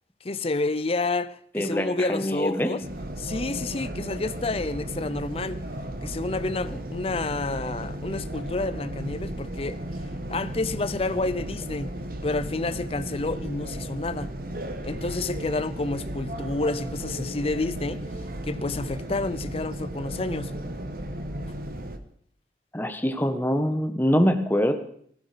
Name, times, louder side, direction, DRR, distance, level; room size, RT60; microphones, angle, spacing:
voice 1, 0.2-2.8 3.2-5.6 6.0-9.8 10.3-11.9 12.2-14.3 14.8-18.0 18.4-20.5, left 2 dB, 35° left, 0.6 m, -29 dB
voice 2, 1.5-2.7 22.7-24.7, equal, 10° left, 1.3 m, -24 dB
sound 1, 2.8-22.0, right 1 dB, 55° right, 1.3 m, -35 dB
15.5 x 15.5 x 5.1 m
head